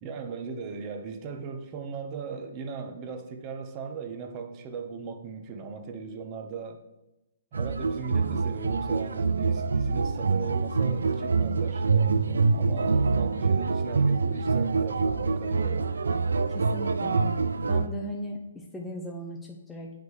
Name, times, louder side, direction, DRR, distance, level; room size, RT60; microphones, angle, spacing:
voice 1, 0.0-6.8 7.5-15.9, right 5 dB, 30° right, 5 dB, 0.9 m, -38 dB
sound 1, 7.5-17.9, right 4 dB, 85° right, 0.4 m, -25 dB
voice 2, 16.5-17.4 17.7-19.9, equal, 5° left, -1 dB, 0.6 m, -37 dB
8.0 x 5.1 x 3.2 m, 0.94 s
hypercardioid pair, 140°, 0 cm